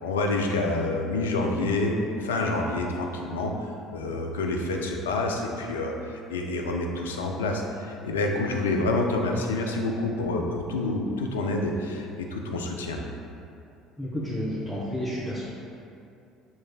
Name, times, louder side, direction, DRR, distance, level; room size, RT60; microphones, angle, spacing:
voice 1, 0.0-13.0, left 2 dB, 85° left, 2 dB, 0.4 m, -28 dB
voice 2, 14.0-15.4, equal, 15° right, -11 dB, 1.2 m, -31 dB
6.9 x 3.1 x 2.3 m, 2.5 s
hypercardioid pair, 60°, 0 cm